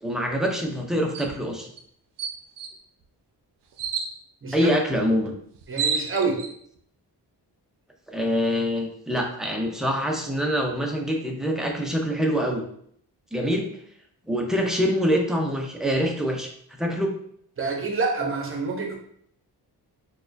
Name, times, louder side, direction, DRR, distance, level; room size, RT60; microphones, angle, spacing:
voice 1, 0.0-1.7 4.5-5.3 8.1-12.6 13.3-13.7 14.3-16.5 16.8-17.1, equal, ahead, 1 dB, 0.4 m, -25 dB
sound 1, 1.1-1.3 1.8-1.9 2.2-2.7 3.8-4.1 5.3-5.4 5.5-6.5, right 6 dB, 85° right, 0.5 m, -29 dB
voice 2, 5.7-6.4 17.6-19.0, right 4 dB, 30° right, 1 dB, 0.7 m, -27 dB
4.0 x 2.2 x 2.6 m, 0.65 s
wide cardioid pair, 145°, 40 cm